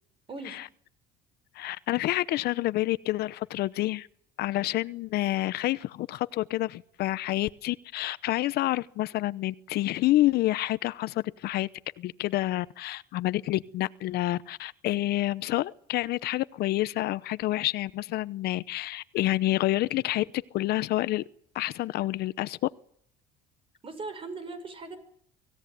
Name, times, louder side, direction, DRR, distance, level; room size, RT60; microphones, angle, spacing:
voice 1, 0.3-0.6 23.8-25.0, right 3 dB, 30° right, 11 dB, 5.8 m, -39 dB
voice 2, 1.5-4.1 4.4-11.7 12.0-20.3 20.5-21.2 21.5-22.6, left 16 dB, 60° left, 16 dB, 0.9 m, -28 dB
25.0 x 16.5 x 9.5 m, 0.67 s
cardioid pair, 135°, 19 cm